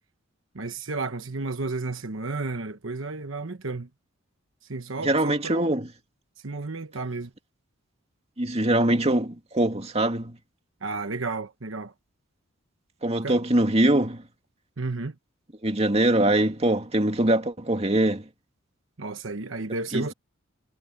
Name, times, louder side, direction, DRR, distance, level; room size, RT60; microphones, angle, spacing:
voice 1, 0.5-3.9 4.6-5.7 6.4-7.3 10.8-11.9 13.2-13.4 14.8-15.1 19.0-20.1, right 3 dB, 70° right, 1.2 m, -32 dB
voice 2, 5.0-5.9 8.4-10.4 13.0-14.2 15.6-18.2 19.9-20.0, right 1 dB, 30° right, 2.3 m, -23 dB
head